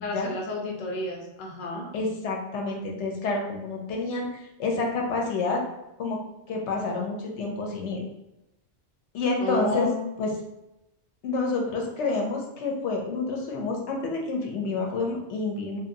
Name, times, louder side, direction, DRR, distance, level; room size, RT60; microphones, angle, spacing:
voice 1, 0.0-1.9 9.4-10.1, left 2 dB, 50° left, 0 dB, 0.6 m, -31 dB
voice 2, 1.9-5.6 6.0-6.2 6.5-8.0 9.1-9.9 10.2-10.3 11.2-15.8, left 3 dB, 80° left, 0 dB, 0.9 m, -28 dB
2.8 x 2.3 x 2.6 m, 0.90 s
omnidirectional pair, 1.2 m